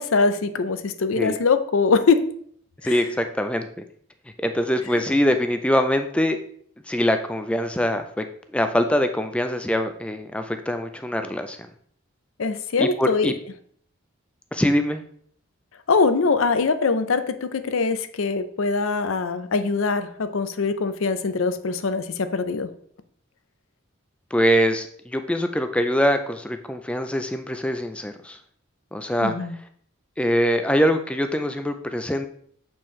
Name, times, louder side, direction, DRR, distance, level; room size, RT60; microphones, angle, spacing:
voice 1, 0.0-2.2 2.8-3.0 4.9-5.0 12.4-13.3 15.9-22.7 29.2-29.6, left 4 dB, 75° left, 11 dB, 0.5 m, -23 dB
voice 2, 2.8-3.8 4.4-6.4 6.9-8.2 8.5-11.6 12.8-13.3 14.5-15.0 24.3-28.4 28.9-29.4 30.2-32.3, equal, 5° left, 8 dB, 0.3 m, -23 dB
7.3 x 4.4 x 3.1 m, 0.62 s
head